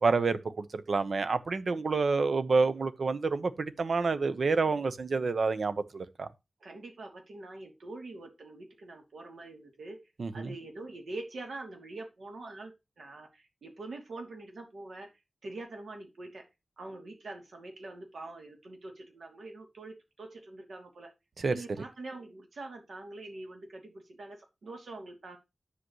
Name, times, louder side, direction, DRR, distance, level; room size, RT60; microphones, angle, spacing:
voice 1, 0.0-6.3 10.2-10.5 21.4-21.5, right 4 dB, 70° right, 0.9 m, -28 dB
voice 2, 6.6-12.7 13.0-15.1 15.4-16.5 16.8-21.1 21.5-25.4, right 2 dB, 90° right, 2.9 m, -44 dB
9.9 x 7.9 x 3.1 m
wide cardioid pair, 115°, 0 cm